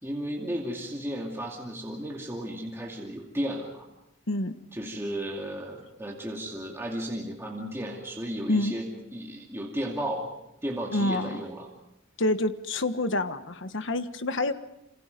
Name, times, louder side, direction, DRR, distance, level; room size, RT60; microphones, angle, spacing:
voice 1, 0.0-3.9 4.7-10.3 10.6-11.7, equal, 10° right, -1 dB, 2.5 m, -34 dB
voice 2, 4.3-4.6 8.5-8.8 10.9-11.4 12.2-14.5, left 2 dB, 65° left, 10 dB, 1.4 m, -27 dB
28.5 x 26.0 x 5.3 m, 0.84 s
head